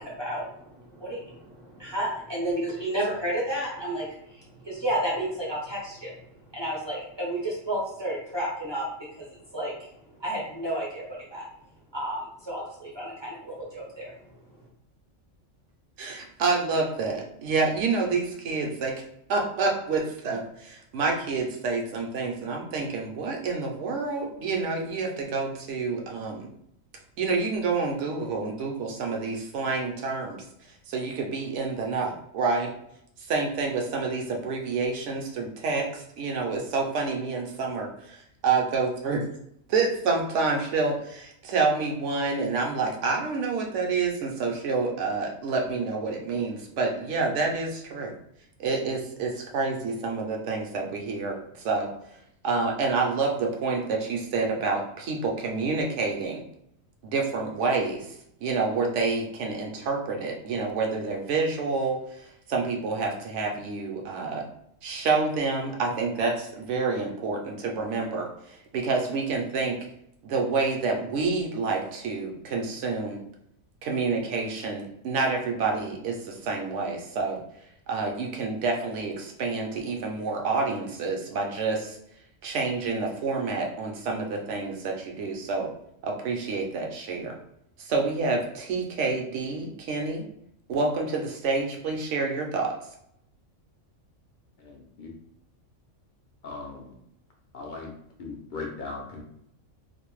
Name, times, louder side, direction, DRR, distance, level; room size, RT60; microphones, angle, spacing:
voice 1, 0.0-6.2 6.5-8.9 9.2-9.9 10.2-11.5 11.9-14.1, right 1 dB, 40° right, -5 dB, 0.4 m, -32 dB
voice 2, 16.0-18.9 19.3-26.5 27.2-30.4 30.9-32.7 33.3-39.2 39.7-48.1 48.6-51.9 52.4-56.4 57.0-64.4 64.8-69.8 70.2-73.2 73.8-77.4 77.9-82.0 82.4-85.7 86.0-87.4 87.8-90.2 90.7-92.7, right 4 dB, 75° right, 1 dB, 0.9 m, -28 dB
voice 3, 94.6-95.1 96.4-96.9 97.5-97.9 98.2-99.2, left 3 dB, 60° left, 0 dB, 0.5 m, -38 dB
2.5 x 2.0 x 3.0 m, 0.73 s
omnidirectional pair, 1.3 m